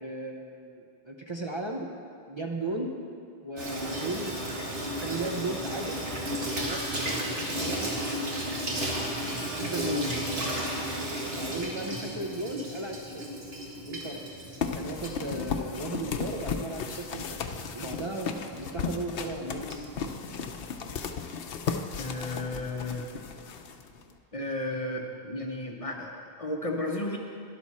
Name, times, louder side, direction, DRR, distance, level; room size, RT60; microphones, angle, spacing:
voice 1, 0.0-1.9 2.3-2.9 3.4-6.0 6.6-7.9 9.6-10.2 11.3-13.2 13.8-14.2 14.7-17.5 17.7-20.2, right 2 dB, 30° right, 0 dB, 0.7 m, -36 dB
Water tap faucet / Sink (filling or washing), 3.6-21.0, right 1 dB, 70° right, 1.9 m, -35 dB
sound 1, 14.6-24.1, left 6 dB, 65° left, 0.8 m, -35 dB
voice 2, 22.0-23.2 24.3-27.2, left 2 dB, 35° left, 1 dB, 0.8 m, -33 dB
12.0 x 11.5 x 4.2 m, 2.4 s
omnidirectional pair, 1.1 m